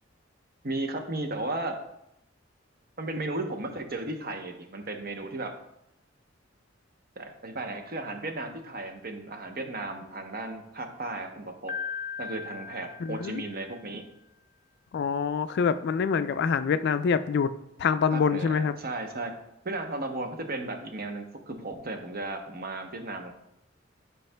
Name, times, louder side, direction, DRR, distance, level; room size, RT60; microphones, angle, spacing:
voice 1, 0.6-1.8 3.0-5.5 7.2-11.8 12.2-14.0 18.1-19.3 19.6-23.3, right 2 dB, 50° right, 4 dB, 0.8 m, -35 dB
Piano, 11.7-13.8, left 6 dB, 40° left, 0.7 m, -38 dB
voice 2, 13.0-13.4 14.9-17.5 17.8-18.7, left 6 dB, 60° left, 12 dB, 0.3 m, -25 dB
10.5 x 4.7 x 2.2 m, 0.82 s
head